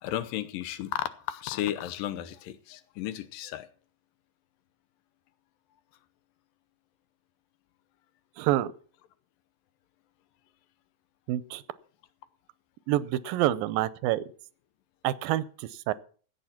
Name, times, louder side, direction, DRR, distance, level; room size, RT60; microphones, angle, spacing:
voice 1, 0.0-3.7, left 12 dB, 80° left, 2.5 m, -34 dB
voice 2, 8.4-8.7 11.3-11.6 12.9-14.2 15.0-15.9, right 14 dB, 85° right, 2.4 m, -27 dB
14.5 x 8.9 x 5.9 m
omnidirectional pair, 4.0 m